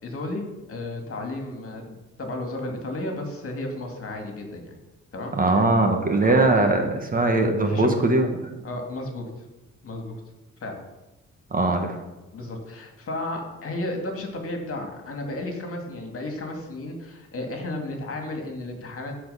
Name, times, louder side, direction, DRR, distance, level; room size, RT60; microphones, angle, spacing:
voice 1, 0.0-4.8 5.1-5.7 6.2-6.5 7.7-8.1 8.6-9.3 9.8-10.2 10.6-10.8 12.3-19.1, left 2 dB, 45° left, 3 dB, 2.3 m, -33 dB
voice 2, 5.3-8.3 11.5-12.0, right 2 dB, 30° right, 4 dB, 1.4 m, -20 dB
13.0 x 4.6 x 5.6 m, 1.0 s
cardioid pair, 90°, 30 cm